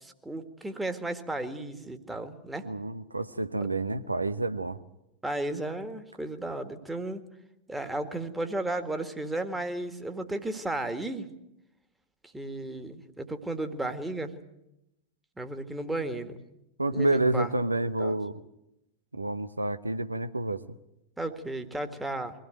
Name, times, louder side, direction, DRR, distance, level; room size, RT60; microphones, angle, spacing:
voice 1, 0.0-2.7 3.6-3.7 5.2-7.2 7.7-11.3 12.3-14.3 15.4-16.4 16.9-17.5 18.0-18.2 21.2-22.3, right 2 dB, 5° right, 7 dB, 1.9 m, -34 dB
voice 2, 2.6-4.8 16.8-18.4 19.2-20.8, right 2 dB, 80° right, 12 dB, 0.9 m, -29 dB
23.0 x 16.5 x 9.2 m, 0.88 s
figure-of-eight pair, 90°, 0 cm